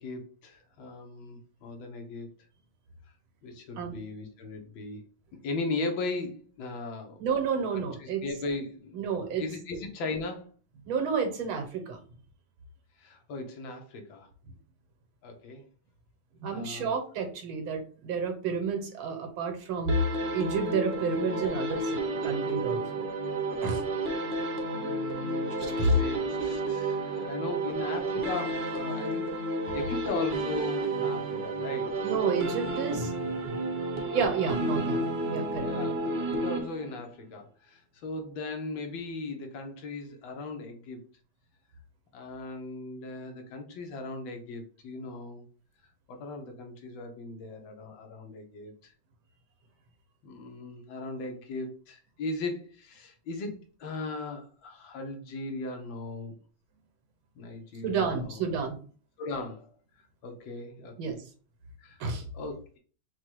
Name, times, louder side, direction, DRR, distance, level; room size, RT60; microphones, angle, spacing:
voice 1, 0.0-2.3 3.4-5.0 5.4-7.2 7.7-9.0 9.4-10.5 13.0-14.3 15.2-15.6 16.5-16.9 24.7-29.3 29.7-31.9 35.6-41.0 42.1-45.4 46.1-48.9 50.2-53.5 53.8-56.3 57.4-58.4 59.2-59.7 60.0-61.2 61.8-62.0 62.3-62.8, left 3 dB, 75° left, 4 dB, 1.6 m, -38 dB
voice 2, 7.2-8.2 8.9-9.4 10.8-12.0 16.4-20.0 20.3-23.0 23.6-23.8 25.6-26.0 32.0-33.6 34.1-35.0 35.3-35.7 57.8-58.8 61.0-61.2 62.0-62.2, right 4 dB, 85° right, 5 dB, 1.8 m, -30 dB
sound 1, 19.9-37.1, right 2 dB, 50° right, 0.8 m, -31 dB
4.6 x 2.3 x 4.5 m, 0.40 s
omnidirectional pair, 2.2 m